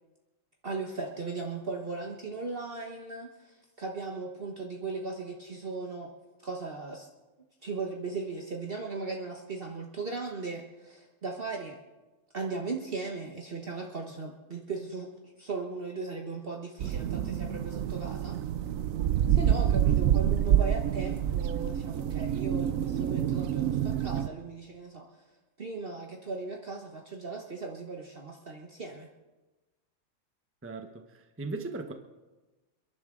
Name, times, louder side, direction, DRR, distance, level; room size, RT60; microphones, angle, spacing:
voice 1, 0.6-6.1 6.4-7.1 7.6-11.8 12.3-18.4 19.3-25.2 25.6-29.1, right 3 dB, 45° right, 1 dB, 1.4 m, -37 dB
sound 1, 16.8-24.3, right 10 dB, 80° right, 1.0 m, -27 dB
voice 2, 30.6-31.9, right 3 dB, 10° right, 5 dB, 0.9 m, -38 dB
29.0 x 11.0 x 3.8 m, 1.2 s
omnidirectional pair, 1.4 m